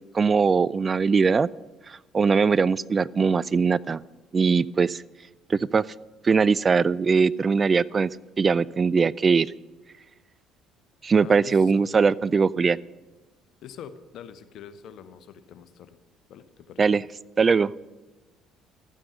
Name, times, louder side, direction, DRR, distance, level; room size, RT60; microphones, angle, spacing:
voice 1, 0.1-1.5 1.9-4.0 4.3-5.0 5.5-5.9 6.2-8.1 8.4-9.5 11.0-12.8 16.8-17.0 17.4-17.7, right 5 dB, 35° right, 20 dB, 0.3 m, -21 dB
voice 2, 11.2-11.9 13.6-16.0 16.3-16.8, left 8 dB, 60° left, 10 dB, 0.9 m, -44 dB
13.0 x 9.0 x 6.4 m, 1.2 s
hypercardioid pair, 55°, 0 cm